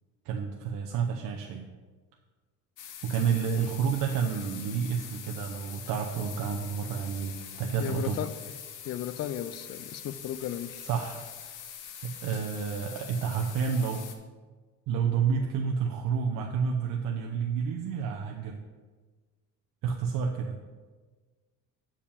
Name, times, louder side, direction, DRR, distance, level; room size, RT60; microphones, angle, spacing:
voice 1, 0.2-1.7 3.0-8.2 10.8-11.5 12.0-14.0 14.9-18.6 19.8-20.6, right 6 dB, 85° right, 2 dB, 0.8 m, -30 dB
sound 1, 2.8-14.2, left 9 dB, 70° left, 1.0 m, -44 dB
voice 2, 7.8-8.4 8.8-10.9, left 10 dB, 50° left, 13 dB, 0.5 m, -35 dB
7.0 x 5.0 x 7.0 m, 1.4 s
cardioid pair, 160°, 32 cm